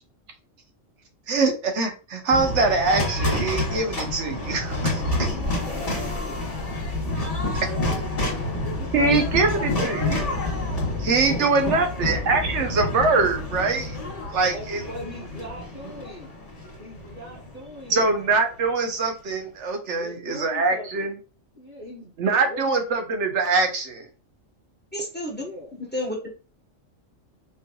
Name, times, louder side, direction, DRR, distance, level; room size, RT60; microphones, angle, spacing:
voice 1, 1.3-5.3 8.9-10.3 11.0-14.0 14.3-14.8 17.9-21.2 22.2-24.1, right 4 dB, 65° right, 5 dB, 1.1 m, -23 dB
sound 1, 2.3-18.5, left 2 dB, 30° left, 1.5 m, -28 dB
voice 2, 4.9-6.5 7.6-9.6 11.1-11.9 12.3-12.7 14.3-16.3 16.8-18.1 20.0-21.1 21.5-22.8 25.3-25.8, equal, 80° right, -6 dB, 1.8 m, -40 dB
voice 3, 24.9-25.4 25.9-26.3, equal, 10° left, -1 dB, 0.9 m, -30 dB
4.4 x 3.3 x 2.3 m, 0.34 s
omnidirectional pair, 1.3 m